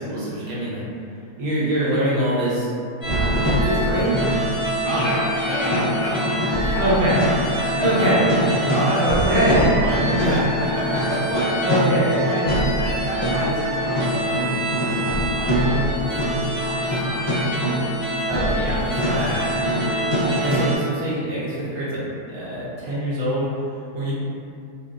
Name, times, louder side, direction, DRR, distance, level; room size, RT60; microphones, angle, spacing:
voice 1, 0.1-0.8 1.4-2.7 3.4-4.1 6.8-7.2 7.8-8.2 8.9-9.7 10.0-10.3 11.6-12.2 18.3-19.5 20.3-23.4 23.9-24.1, right 1 dB, 65° right, -8 dB, 1.0 m, -24 dB
sound 1, 3.0-20.8, equal, 30° left, 0.5 m, -23 dB
voice 2, 4.8-7.2 7.6-8.2 8.7-11.7 12.2-15.0 15.3-17.6 18.3-18.7 19.2-19.5 20.0-20.2, equal, 70° left, -10 dB, 0.7 m, -29 dB
3.0 x 2.0 x 2.4 m, 2.3 s
omnidirectional pair, 1.7 m